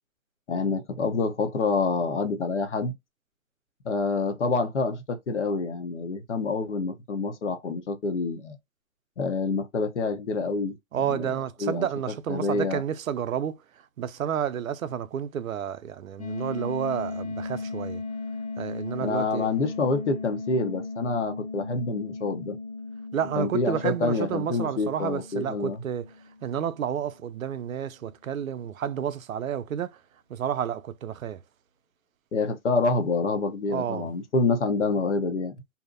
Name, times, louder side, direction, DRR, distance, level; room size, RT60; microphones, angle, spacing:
voice 1, 0.5-2.9 3.8-8.6 9.2-10.8 11.1-11.3 11.6-11.9 12.3-12.8 19.0-22.6 23.4-25.8 32.3-35.5, left 3 dB, 55° left, 0.9 m, -27 dB
voice 2, 10.9-13.6 14.0-18.0 18.6-19.5 23.1-26.1 26.4-30.0 30.3-31.4 33.7-34.1, right 9 dB, 75° right, 0.5 m, -30 dB
sound 1, 16.2-26.9, left 3 dB, 25° left, 0.6 m, -37 dB
2.7 x 2.1 x 2.4 m
hypercardioid pair, 165°, 41 cm